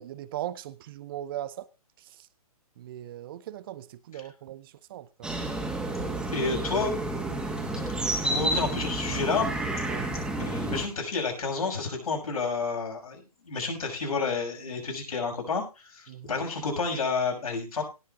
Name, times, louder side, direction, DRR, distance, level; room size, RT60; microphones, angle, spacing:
voice 1, 0.0-1.6 2.8-5.3 9.9-10.1 16.1-16.4, right 12 dB, 35° right, 0.8 m, -39 dB
sound 1, 5.2-10.8, right 2 dB, 5° right, 2.3 m, -30 dB
voice 2, 6.0-6.9 8.2-9.5 10.4-17.8, left 4 dB, 65° left, 6.3 m, -30 dB
18.0 x 7.1 x 4.1 m
figure-of-eight pair, 130°, 19 cm